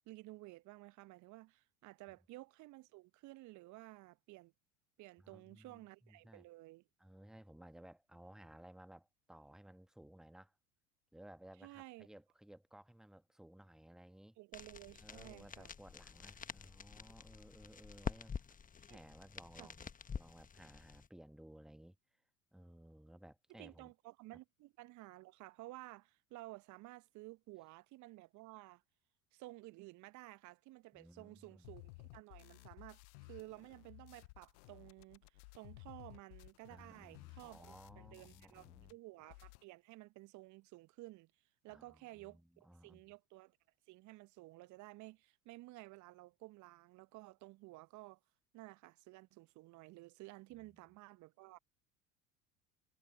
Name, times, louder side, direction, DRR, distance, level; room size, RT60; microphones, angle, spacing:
voice 1, 0.1-4.5 5.0-6.8 11.6-12.1 14.4-15.7 18.9-19.0 19.6-19.7 23.5-28.8 29.3-33.0 33.3-41.3 41.6-43.6 43.9-48.2 48.5-51.6, right 20 dB, 45° right, 1.1 m, -54 dB
voice 2, 5.2-6.4 7.0-10.5 11.1-14.4 15.0-18.3 18.9-22.0 22.5-23.9 24.3-24.4 30.9-31.7 36.7-38.9 41.7-43.0 50.6-50.9, right 1 dB, ahead, 1.4 m, -58 dB
sound 1, 14.5-21.1, left 6 dB, 20° left, 1.3 m, -48 dB
sound 2, 31.6-38.9 39.2-39.6, left 27 dB, 55° left, 0.9 m, -57 dB
figure-of-eight pair, 75°, 42 cm